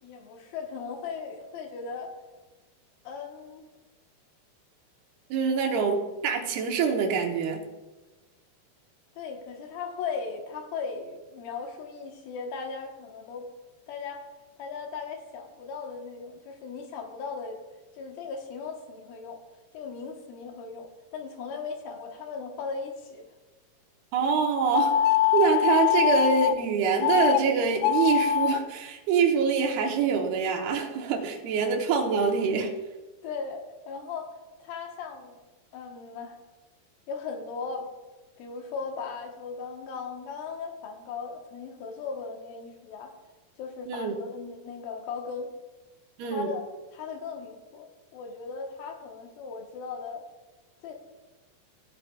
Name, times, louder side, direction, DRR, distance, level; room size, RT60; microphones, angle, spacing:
voice 1, 0.0-2.2 3.0-3.6 9.2-13.5 13.9-14.3 14.6-17.6 18.0-19.4 19.7-23.2 33.2-35.4 35.7-36.4 37.1-37.9 38.4-43.1 43.6-45.5 46.2-46.6 46.9-50.2 50.8-50.9, left 5 dB, 70° left, 2 dB, 2.9 m, -37 dB
voice 2, 5.3-7.6 24.1-25.0 25.3-32.7 43.9-44.1 46.2-46.5, right 6 dB, 75° right, 3 dB, 3.0 m, -25 dB
sound 1, 24.7-26.6 27.0-27.4 27.8-28.6, left 11 dB, 85° left, 2.1 m, -23 dB
15.0 x 8.6 x 2.4 m, 1.2 s
omnidirectional pair, 4.7 m